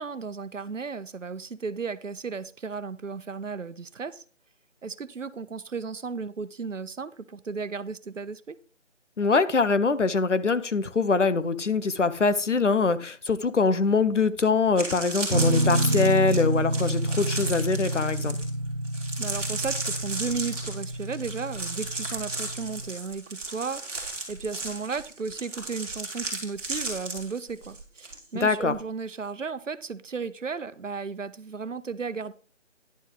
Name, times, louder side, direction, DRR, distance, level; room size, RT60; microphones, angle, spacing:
voice 1, 0.0-4.2 4.8-8.6 19.2-32.3, right 5 dB, 80° right, 0.9 m, -34 dB
voice 2, 9.2-18.4 28.3-28.7, left 4 dB, 70° left, 1.0 m, -23 dB
sound 1, 14.2-14.3 14.6-28.2 28.4-28.8, right 2 dB, 5° right, 2.3 m, -35 dB
sound 2, 15.3-22.9, right 1 dB, 40° right, 0.7 m, -28 dB
11.0 x 7.9 x 3.9 m
figure-of-eight pair, 170°, 37 cm